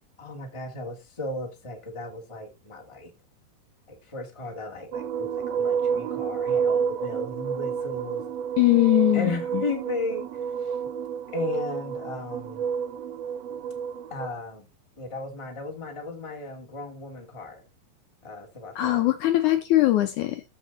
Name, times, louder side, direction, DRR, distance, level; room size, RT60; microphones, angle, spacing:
voice 1, 0.2-3.1 3.9-8.3 9.1-10.8 11.3-12.7 14.1-14.7 15.0-17.6 18.2-19.0, left 3 dB, 10° left, 1.7 m, -35 dB
sound 1, 4.9-14.3, right 7 dB, 90° right, 1.4 m, -29 dB
voice 2, 8.6-9.6 18.8-20.4, left 16 dB, 75° left, 2.0 m, -21 dB
14.0 x 4.8 x 3.9 m
omnidirectional pair, 4.0 m